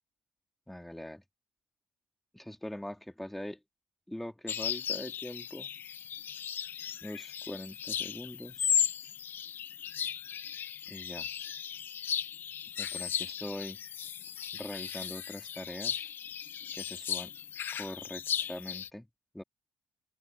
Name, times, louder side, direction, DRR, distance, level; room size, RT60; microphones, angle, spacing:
voice 1, 0.7-1.2 2.3-3.6 4.1-5.7 7.0-8.7 10.9-11.3 12.8-13.8 14.5-16.1 16.8-17.3 17.7-19.1 19.3-19.4, left 1 dB, 5° left, 3.3 m, -42 dB
sound 1, 4.5-18.9, left 8 dB, 55° left, 0.8 m, -36 dB
open air
cardioid pair, 110°, 4 cm